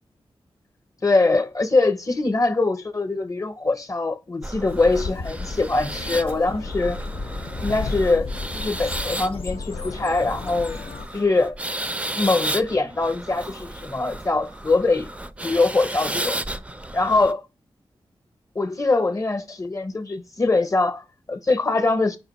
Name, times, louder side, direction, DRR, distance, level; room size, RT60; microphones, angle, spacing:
voice 1, 1.0-7.0 7.6-10.8 11.1-11.6 12.2-15.1 15.4-16.4 16.9-17.4 18.5-22.2, left 3 dB, 35° left, 0.7 m, -23 dB
sound 1, 4.4-17.3, right 1 dB, 15° right, 0.3 m, -33 dB
sound 2, 4.7-11.1, left 3 dB, 75° left, 0.6 m, -33 dB
5.0 x 2.5 x 4.0 m
wide cardioid pair, 80°, 10 cm